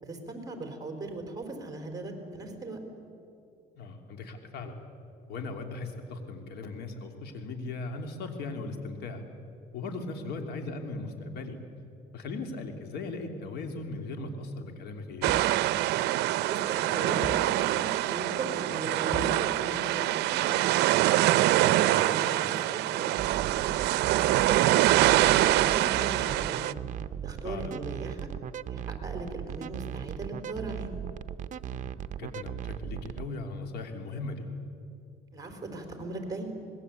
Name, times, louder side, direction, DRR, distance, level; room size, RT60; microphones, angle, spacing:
voice 1, 0.0-2.8 10.2-10.4 16.4-20.0 20.3-20.9 21.6-23.8 24.2-26.7 27.2-28.3 28.7-30.9 35.3-36.5, right 2 dB, 20° right, 4 dB, 4.0 m, -38 dB
voice 2, 3.7-4.8 5.3-9.2 9.7-11.6 12.1-15.4 21.6-22.1 27.4-27.7 31.7-34.4, left 3 dB, 75° left, 5 dB, 3.1 m, -38 dB
sound 1, 15.2-26.7, right 15 dB, 80° right, 0.6 m, -25 dB
sound 2, 15.3-15.7 17.2-17.6 19.1-19.5, left 2 dB, 10° left, 0.8 m, -39 dB
sound 3, 23.2-33.3, right 10 dB, 50° right, 0.8 m, -37 dB
25.5 x 20.5 x 8.4 m, 2.6 s
cardioid pair, 110°, 17 cm